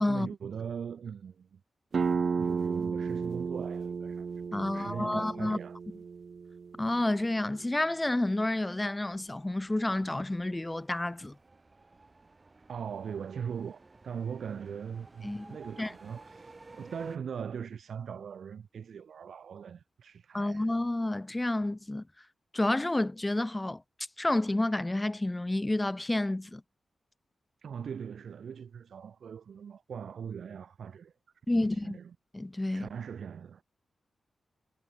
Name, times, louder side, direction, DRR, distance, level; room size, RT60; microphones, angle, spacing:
voice 1, 0.1-1.6 2.4-4.3 4.6-5.8 12.7-20.7 27.6-31.1 31.5-32.1 32.7-33.6, right 7 dB, 80° right, 1.3 m, -40 dB
sound 1, 1.9-7.3, right 5 dB, 50° right, 0.4 m, -33 dB
voice 2, 4.5-5.6 6.8-11.4 15.2-15.9 20.3-22.0 22.5-23.8 24.2-26.6 31.5-32.0 32.3-32.9, left 1 dB, 15° left, 0.4 m, -30 dB
sound 2, 9.0-17.2, right 3 dB, 25° right, 2.8 m, -54 dB
wide cardioid pair, 145°, 0 cm